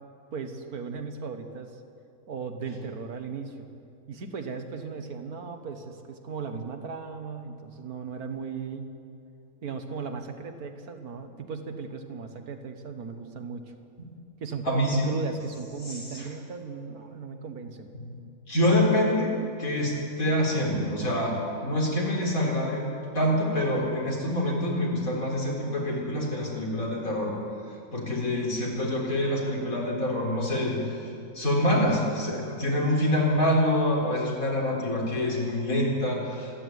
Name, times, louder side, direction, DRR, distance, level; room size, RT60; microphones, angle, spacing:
voice 1, 0.3-1.8 2.3-3.7 4.1-8.9 9.6-13.7 14.4-17.9, right 5 dB, 85° right, 6 dB, 1.9 m, -37 dB
voice 2, 14.6-15.1 15.9-16.3 17.9-18.1 18.5-19.3 19.6-27.3 27.9-36.5, left 1 dB, 70° left, -3 dB, 4.6 m, -26 dB
26.5 x 10.5 x 9.5 m, 2.5 s
omnidirectional pair, 1.5 m